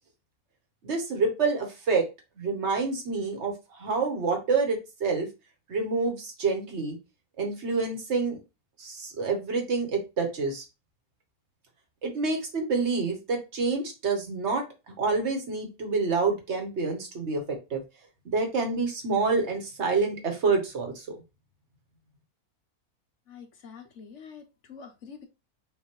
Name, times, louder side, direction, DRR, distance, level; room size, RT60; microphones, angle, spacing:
voice 1, 0.8-2.1 2.4-5.3 5.7-7.0 7.4-8.4 8.8-10.6 12.0-14.6 15.0-17.8 18.2-21.2, right 4 dB, 50° right, 1.4 m, -27 dB
voice 2, 23.3-25.3, left 6 dB, 60° left, 1.0 m, -46 dB
5.8 x 2.6 x 3.1 m
omnidirectional pair, 1.6 m